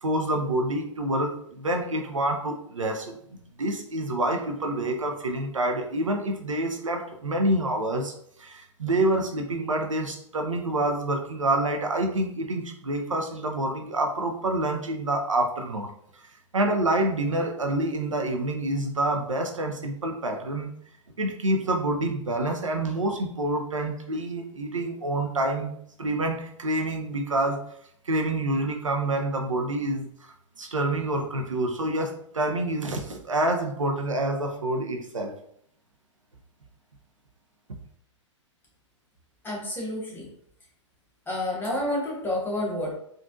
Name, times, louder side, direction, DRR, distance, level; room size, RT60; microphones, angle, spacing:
voice 1, 0.0-8.1 8.4-15.9 16.1-16.2 16.5-20.7 21.2-27.6 28.0-35.3, right 1 dB, 85° right, 3 dB, 0.6 m, -27 dB
voice 2, 39.4-40.3 41.3-43.0, left 1 dB, 15° left, -4 dB, 1.2 m, -29 dB
3.7 x 2.5 x 2.4 m, 0.67 s
figure-of-eight pair, 110°, 16 cm